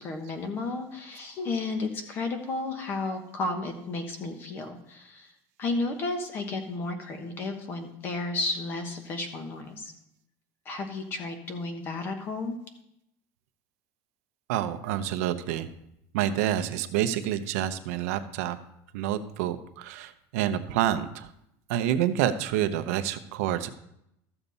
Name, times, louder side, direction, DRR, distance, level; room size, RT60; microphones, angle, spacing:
voice 1, 0.0-5.3 5.6-9.9 10.6-12.6, left 3 dB, 25° left, 7 dB, 1.1 m, -33 dB
voice 2, 14.5-15.7 16.1-18.6 18.9-21.3 21.7-23.7, right 11 dB, 80° right, 9 dB, 0.8 m, -28 dB
13.5 x 7.1 x 4.1 m, 0.79 s
cardioid pair, 180°, 8 cm